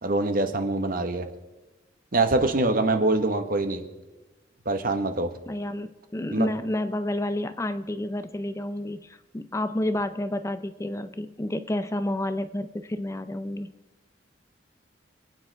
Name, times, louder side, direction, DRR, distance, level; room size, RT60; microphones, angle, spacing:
voice 1, 0.0-1.3 2.1-3.9 4.6-5.3 6.3-6.5, right 2 dB, 50° right, 7 dB, 1.2 m, -24 dB
voice 2, 5.5-13.7, left 1 dB, 15° left, 11 dB, 0.5 m, -30 dB
27.5 x 9.2 x 3.4 m, 1.1 s
head